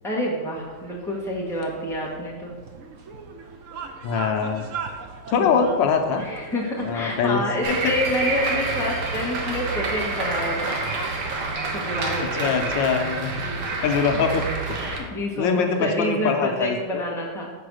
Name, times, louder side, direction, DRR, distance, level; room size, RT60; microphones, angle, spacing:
voice 1, 0.0-2.5 5.4-5.7 6.1-10.8 11.7-12.5 13.4-14.0 14.8-17.5, left 1 dB, ahead, -4 dB, 1.3 m, -28 dB
sound 1, 0.6-15.1, right 5 dB, 60° right, 0.9 m, -40 dB
voice 2, 4.0-4.6 5.3-6.2 6.9-7.4 7.7-7.8 12.4-13.3 13.8-14.4 14.7-14.8 15.4-17.0, left 6 dB, 90° left, 4 dB, 1.5 m, -23 dB
sound 2, 7.6-15.0, right 3 dB, 80° right, 1.8 m, -28 dB
6.1 x 4.8 x 6.3 m, 1.4 s
omnidirectional pair, 2.0 m